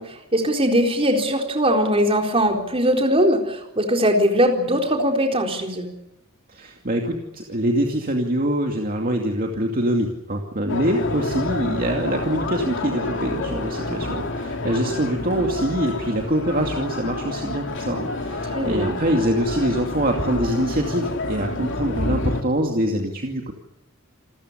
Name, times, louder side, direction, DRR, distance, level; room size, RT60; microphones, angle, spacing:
voice 1, 0.0-5.9 18.5-18.9, equal, 25° right, 2 dB, 4.2 m, -20 dB
voice 2, 6.5-23.5, right 1 dB, 40° right, 1 dB, 2.5 m, -24 dB
sound 1, 10.7-22.4, left 2 dB, 60° left, 2.9 m, -29 dB
28.5 x 14.5 x 9.9 m, 0.89 s
head